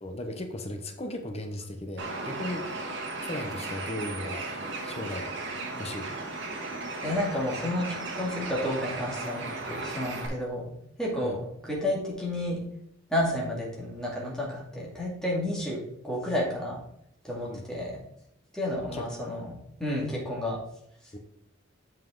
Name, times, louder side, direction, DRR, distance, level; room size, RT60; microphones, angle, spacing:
voice 1, 0.0-4.4 4.8-5.3 5.8-6.2 11.2-11.4 17.5-17.6 18.9-19.3 21.1-21.2, left 1 dB, 30° left, 5 dB, 0.8 m, -37 dB
Bird, 2.0-10.3, right 3 dB, 60° right, 1.4 m, -36 dB
voice 2, 7.0-10.6 11.0-12.6 13.1-16.8 17.2-17.9 18.5-20.6, left 1 dB, 5° left, -4 dB, 2.2 m, -31 dB
7.2 x 5.4 x 3.9 m, 0.75 s
head